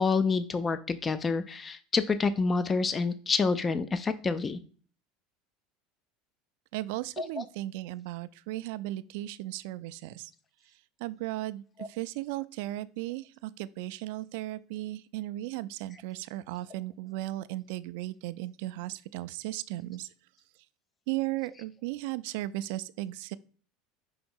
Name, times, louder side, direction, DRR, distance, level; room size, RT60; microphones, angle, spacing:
voice 1, 0.0-4.6 7.2-7.4, left 4 dB, 20° left, 0.4 m, -28 dB
voice 2, 6.7-10.3 11.0-20.1 21.1-23.3, right 16 dB, 75° right, 0.3 m, -36 dB
5.6 x 3.8 x 4.3 m
supercardioid pair, 145°, 0 cm